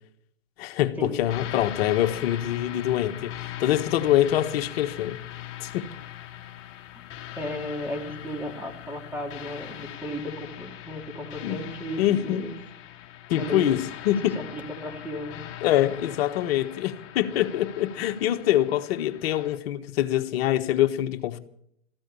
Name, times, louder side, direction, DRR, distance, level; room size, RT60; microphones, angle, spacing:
voice 1, 0.6-3.3 3.6-5.2 5.6-5.9 11.4-11.6 12.0-12.5 13.3-14.4 15.6-21.4, left 12 dB, 55° left, 1.4 m, -24 dB
sound 1, 1.3-19.6, left 12 dB, 35° left, 2.2 m, -41 dB
voice 2, 7.3-12.5 13.4-13.9 14.3-15.4, equal, 5° right, 3.2 m, -35 dB
14.5 x 13.0 x 7.0 m
hypercardioid pair, 125°, 36 cm